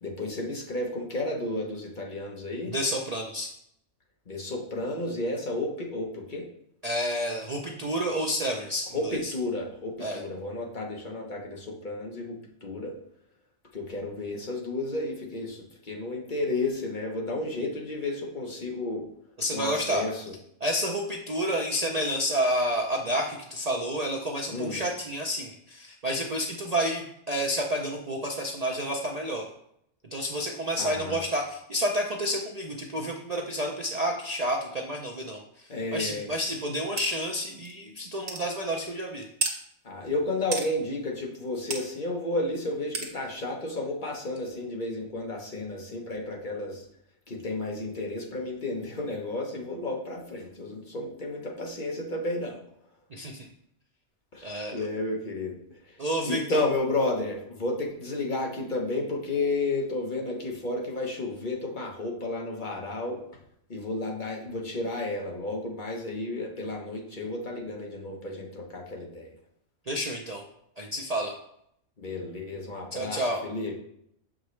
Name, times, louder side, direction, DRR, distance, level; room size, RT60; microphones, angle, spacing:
voice 1, 0.0-2.7 4.3-6.5 8.9-12.9 13.7-19.0 19.5-20.2 24.5-24.8 30.8-31.2 35.7-36.3 39.8-46.8 47.3-52.6 54.3-55.6 55.8-63.2 63.7-69.3 72.0-73.7, left 2 dB, 40° left, -1 dB, 1.1 m, -32 dB
voice 2, 2.7-3.5 6.8-9.3 10.0-10.2 19.4-20.0 20.6-29.5 30.1-39.2 53.1-53.5 54.4-54.9 56.0-56.6 69.9-70.4 70.8-71.3 72.9-73.4, equal, 45° right, 0 dB, 0.5 m, -30 dB
sound 1, 37.0-37.1 37.7-37.8 38.3-38.5 39.4-39.6 40.5-40.7 41.7-41.8 42.9-43.1, right 4 dB, 90° right, 1.5 m, -30 dB
7.0 x 5.0 x 3.2 m, 0.73 s
omnidirectional pair, 1.3 m